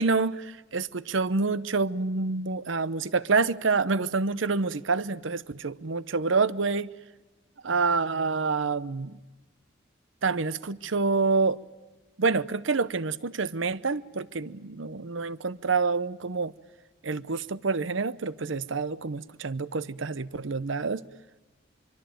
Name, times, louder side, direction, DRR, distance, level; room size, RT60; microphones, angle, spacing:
voice 1, 0.0-6.9 7.6-9.2 10.2-11.6 12.2-16.5 17.0-21.0, right 4 dB, 75° right, 0.8 m, -27 dB
25.0 x 24.0 x 9.2 m
head